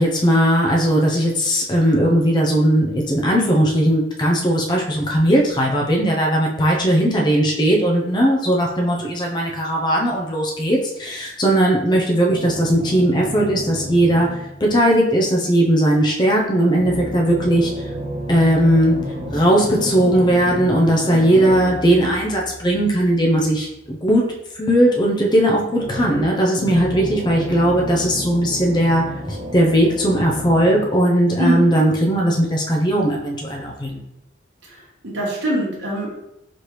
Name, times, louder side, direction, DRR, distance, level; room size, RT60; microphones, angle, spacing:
voice 1, 0.0-17.9 18.3-19.0 19.3-34.0, right 1 dB, 25° left, -1 dB, 0.5 m, -18 dB
sound 1, 12.3-14.8 16.7-23.7 25.7-30.8, right 1 dB, 30° right, 0.4 m, -32 dB
voice 2, 34.6-36.1, right 1 dB, 70° right, -5 dB, 1.2 m, -23 dB
4.2 x 3.2 x 3.0 m, 0.83 s
head